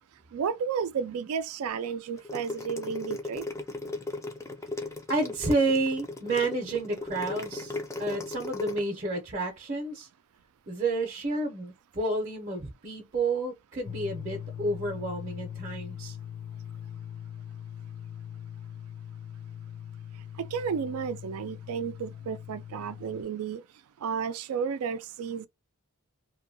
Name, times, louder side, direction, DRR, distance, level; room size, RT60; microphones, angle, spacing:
voice 1, 0.3-3.4 20.4-23.6 24.0-25.5, right 6 dB, 80° right, 0.3 m, -32 dB
sound 1, 2.2-8.8, left 2 dB, 15° left, 0.3 m, -36 dB
voice 2, 5.1-10.1 10.7-16.2, right 2 dB, 35° right, 0.6 m, -30 dB
sound 2, 13.9-23.2, left 9 dB, 80° left, 0.5 m, -41 dB
2.6 x 2.2 x 2.6 m
head